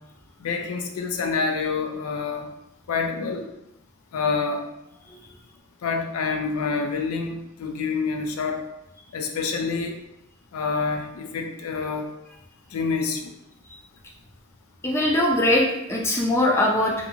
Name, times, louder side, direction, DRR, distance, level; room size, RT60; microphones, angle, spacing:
voice 1, 0.4-2.5 2.9-3.5 4.1-4.6 5.8-8.7 9.1-10.0 10.5-12.1 12.7-13.3, left 4 dB, 85° left, 4 dB, 0.4 m, -27 dB
voice 2, 14.8-16.9, left 1 dB, 10° left, -2 dB, 0.4 m, -21 dB
2.5 x 2.4 x 2.7 m, 0.87 s
head